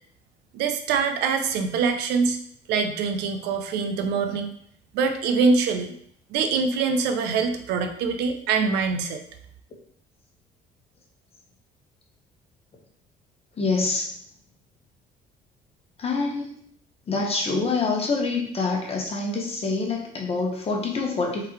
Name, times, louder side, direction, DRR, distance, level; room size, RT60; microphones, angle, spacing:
voice 1, 0.5-2.4 2.7-4.5 4.9-5.9 6.3-9.2, right 5 dB, 90° right, 7 dB, 0.6 m, -24 dB
voice 2, 13.6-14.1 16.0-16.5 17.1-21.5, left 3 dB, 35° left, 0 dB, 1.2 m, -26 dB
4.5 x 3.8 x 3.1 m, 0.64 s
cardioid pair, 110°, 17 cm